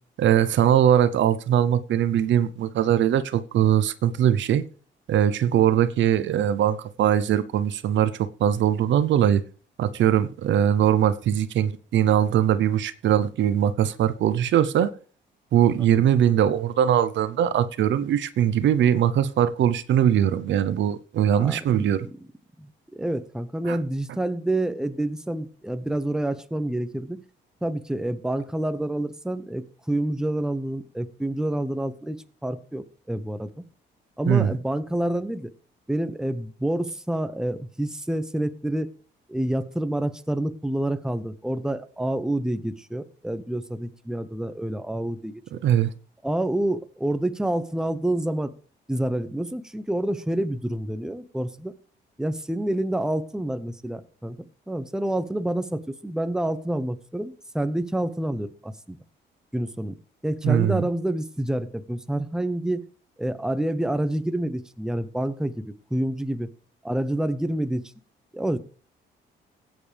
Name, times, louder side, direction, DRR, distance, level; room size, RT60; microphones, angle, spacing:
voice 1, 0.2-4.6 5.1-9.4 9.8-14.9 15.5-22.1 23.7-23.8 34.3-34.5 45.5-45.9 60.4-60.9, right 10 dB, 70° right, 0.7 m, -21 dB
voice 2, 21.4-22.1 22.6-27.2 27.6-32.2 32.4-33.5 34.2-35.5 35.9-38.9 39.3-45.4 46.2-48.5 48.9-51.7 52.2-54.4 54.7-59.0 59.5-60.0 60.2-62.8 63.2-66.5 66.8-67.9 68.3-68.6, right 1 dB, 5° right, 0.9 m, -28 dB
16.0 x 9.1 x 3.4 m
cardioid pair, 90°, 20 cm